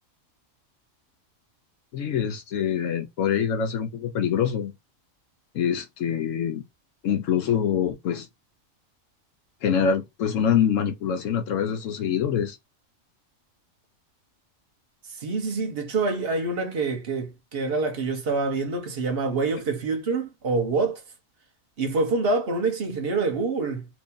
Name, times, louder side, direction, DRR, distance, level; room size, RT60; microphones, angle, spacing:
voice 1, 1.9-4.7 5.5-6.6 7.0-8.3 9.6-12.6, left 8 dB, 70° left, 0.9 m, -25 dB
voice 2, 15.1-21.0 21.8-23.9, right 3 dB, 50° right, 1.0 m, -26 dB
2.8 x 2.6 x 3.6 m
omnidirectional pair, 1.4 m